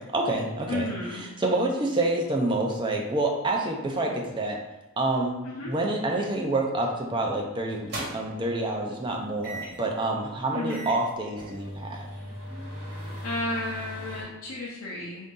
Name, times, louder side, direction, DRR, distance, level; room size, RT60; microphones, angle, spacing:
voice 1, 0.1-4.6 5.0-5.4 5.6-12.1, right 2 dB, 20° right, 0 dB, 0.5 m, -28 dB
voice 2, 0.7-1.3 5.4-5.7 10.5-10.9 13.2-15.3, left 2 dB, 85° left, -4 dB, 0.6 m, -33 dB
sound 1, 6.8-7.0 7.7-8.5 9.4-9.9 10.3-10.4 10.7-14.2, right 1 dB, 50° right, 1.2 m, -38 dB
3.9 x 2.7 x 3.7 m, 1.0 s
head